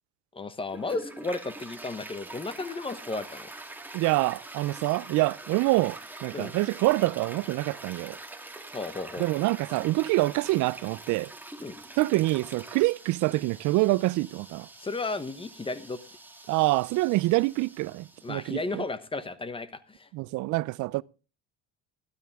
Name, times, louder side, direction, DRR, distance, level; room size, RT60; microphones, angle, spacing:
voice 1, 0.3-3.5 6.3-6.5 8.7-9.3 11.6-11.8 14.8-16.0 18.2-20.1, left 3 dB, 15° left, 1.1 m, -34 dB
Toilet flush, 0.7-18.6, right 2 dB, 5° right, 1.8 m, -45 dB
voice 2, 3.9-8.2 9.2-11.3 12.0-14.7 16.5-18.8 20.1-21.0, right 20 dB, 60° right, 0.5 m, -26 dB
12.5 x 12.5 x 3.6 m
cardioid pair, 110°, 33 cm